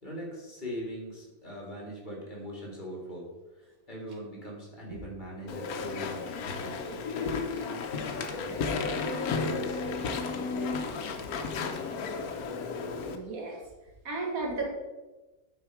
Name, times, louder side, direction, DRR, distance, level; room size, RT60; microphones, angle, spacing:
voice 1, 0.0-8.6 9.3-9.8 10.3-10.8 11.4-11.9, equal, 30° left, -3 dB, 2.4 m, -41 dB
Walk footsteps / Chatter / Squeak, 5.5-13.2, left 4 dB, 80° left, 1.2 m, -33 dB
voice 2, 12.8-13.6 14.1-14.7, right 3 dB, 70° right, 0 dB, 1.9 m, -34 dB
9.5 x 4.6 x 4.8 m, 1.1 s
omnidirectional pair, 1.5 m